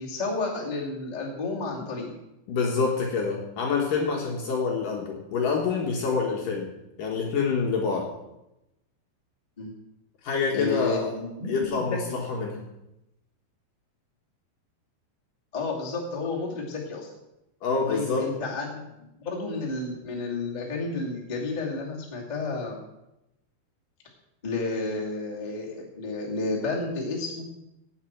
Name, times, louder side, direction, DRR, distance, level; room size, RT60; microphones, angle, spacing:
voice 1, 0.0-2.1 9.6-9.7 10.5-12.0 15.5-17.1 17.9-22.8 24.4-27.4, left 3 dB, 20° left, -3 dB, 1.0 m, -31 dB
voice 2, 2.5-6.7 7.0-8.1 10.2-11.1 11.5-12.6 17.6-18.3, left 5 dB, 65° left, 0 dB, 2.4 m, -27 dB
16.0 x 8.7 x 4.5 m, 0.90 s
omnidirectional pair, 5.2 m